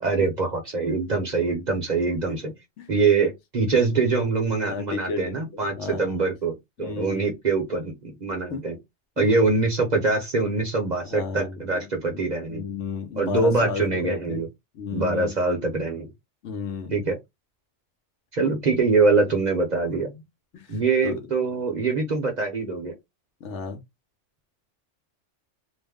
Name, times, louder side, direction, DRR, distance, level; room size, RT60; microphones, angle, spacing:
voice 1, 0.0-2.5 2.9-8.8 9.2-12.6 13.2-14.5 14.9-16.1 16.9-17.2 18.3-20.1 20.7-22.9, right 4 dB, 45° right, 0.7 m, -24 dB
voice 2, 2.3-2.9 3.6-4.0 4.6-6.2 6.8-7.3 8.5-8.6 9.2-9.3 11.1-14.4 14.7-15.4 16.4-17.0 19.9-20.2 20.5-21.2 23.4-23.8, left 4 dB, 75° left, 1.0 m, -34 dB
2.5 x 2.1 x 3.4 m
omnidirectional pair, 1.2 m